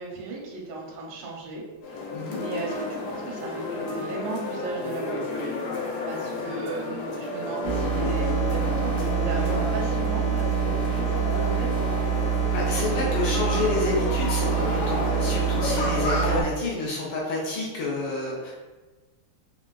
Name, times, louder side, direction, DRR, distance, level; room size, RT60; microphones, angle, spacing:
voice 1, 0.0-5.5 6.1-11.8, right 2 dB, 85° right, -2 dB, 1.6 m, -36 dB
sound 1, 1.8-16.4, left 2 dB, 90° left, 1.6 m, -31 dB
sound 2, 7.6-16.4, right 7 dB, 55° left, 1.0 m, -26 dB
voice 2, 12.5-18.7, left 3 dB, 70° left, -4 dB, 1.3 m, -29 dB
3.8 x 2.4 x 2.3 m, 1.2 s
omnidirectional pair, 2.4 m